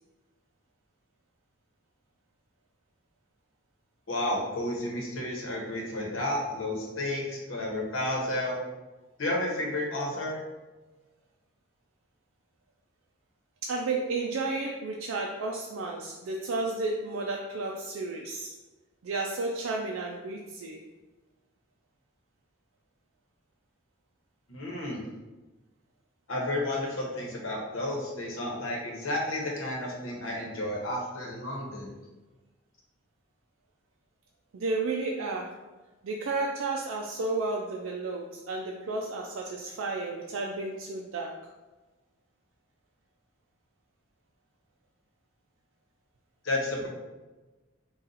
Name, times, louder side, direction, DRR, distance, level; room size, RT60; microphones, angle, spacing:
voice 1, 4.1-8.6 9.2-10.4 24.5-25.0 26.3-31.9 46.4-46.9, left 1 dB, 80° left, -1 dB, 1.0 m, -32 dB
voice 2, 13.6-18.6 19.0-20.9 34.5-35.6 36.0-41.4, right 3 dB, 90° right, 0 dB, 0.4 m, -32 dB
4.1 x 2.4 x 3.8 m, 1.2 s
head